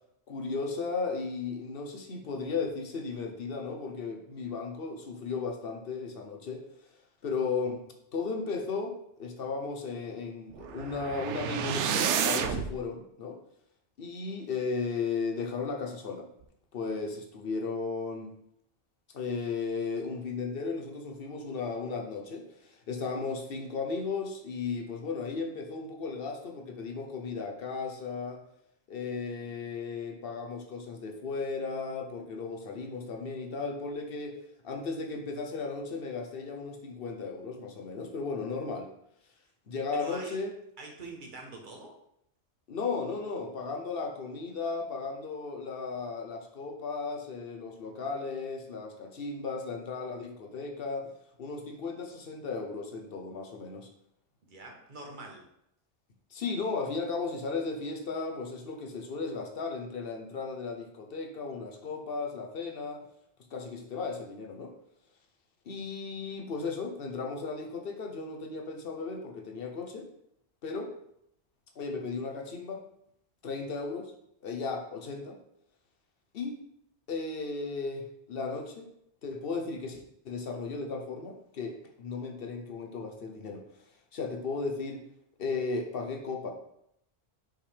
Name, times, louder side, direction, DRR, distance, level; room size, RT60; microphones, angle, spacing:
voice 1, 0.3-6.6 7.2-7.8 8.1-13.4 14.0-16.3 16.7-18.3 19.1-28.4 28.9-34.4 34.6-38.9 39.7-40.5 42.7-51.1 51.4-53.9 56.3-63.1 63.5-64.7 65.7-70.1 70.6-70.9 71.8-72.8 73.4-74.1 74.4-75.4 76.3-76.6 77.1-78.9 79.2-83.6 84.1-85.0 85.4-86.5, left 4 dB, 60° left, 3 dB, 1.0 m, -35 dB
sound 1, 10.5-12.7, right 7 dB, 90° right, 0.9 m, -30 dB
voice 2, 39.9-40.4 40.8-42.0 54.4-55.4, right 2 dB, 45° right, 1 dB, 1.3 m, -44 dB
5.6 x 5.2 x 3.4 m, 0.75 s
omnidirectional pair, 1.2 m